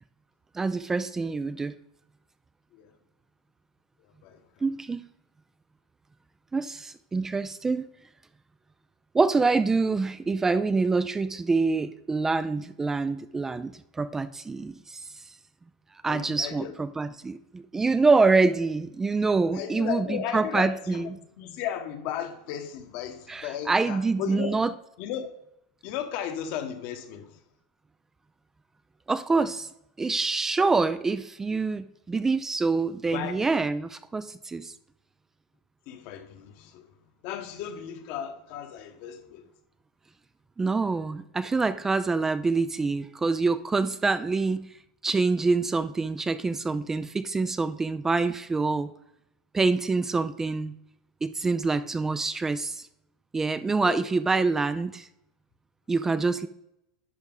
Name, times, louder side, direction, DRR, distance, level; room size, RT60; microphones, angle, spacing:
voice 1, 0.5-1.7 4.6-5.0 6.5-7.9 9.1-15.1 16.0-21.0 23.3-24.7 29.1-29.7 30.0-34.7 40.6-44.6 45.0-48.9 49.5-50.8 51.2-52.9 53.3-55.1 55.9-56.5, right 4 dB, 15° right, 0.4 m, -26 dB
voice 2, 4.0-4.5 16.0-16.8 19.5-24.6 25.0-25.3 25.8-27.4 33.1-33.4 35.9-36.9 37.2-39.5 53.8-54.0, left 9 dB, 55° left, 1.2 m, -35 dB
11.0 x 4.8 x 3.9 m
supercardioid pair, 125°, 3 cm